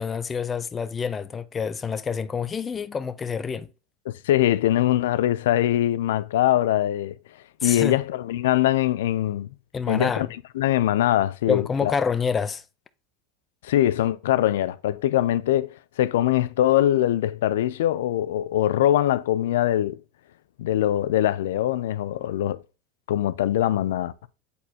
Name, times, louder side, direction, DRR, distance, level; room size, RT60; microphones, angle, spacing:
voice 1, 0.0-3.7 7.6-8.0 9.7-10.2 11.5-12.6, left 6 dB, 25° left, 0.5 m, -27 dB
voice 2, 4.1-7.2 7.6-9.5 9.9-10.3 10.6-12.0 13.6-15.7 16.0-20.0 20.6-22.6 23.1-24.1, left 13 dB, 80° left, 0.4 m, -22 dB
8.2 x 4.3 x 2.8 m
hypercardioid pair, 95°, 0 cm